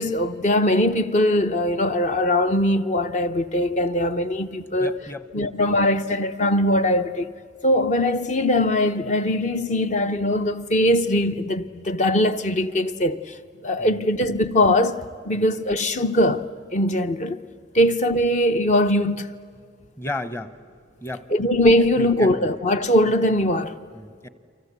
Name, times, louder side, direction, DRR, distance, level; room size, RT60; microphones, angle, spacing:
voice 1, 0.0-5.0 5.3-7.3 7.6-13.4 13.6-16.4 16.7-17.4 17.7-19.3 21.3-23.8, left 1 dB, 40° left, 0.8 m, -21 dB
voice 2, 4.8-5.5 13.8-14.0 15.3-15.4 20.0-20.5 21.0-21.3 22.0-22.5 23.9-24.3, left 1 dB, 15° left, 0.9 m, -34 dB
30.0 x 24.0 x 8.3 m
head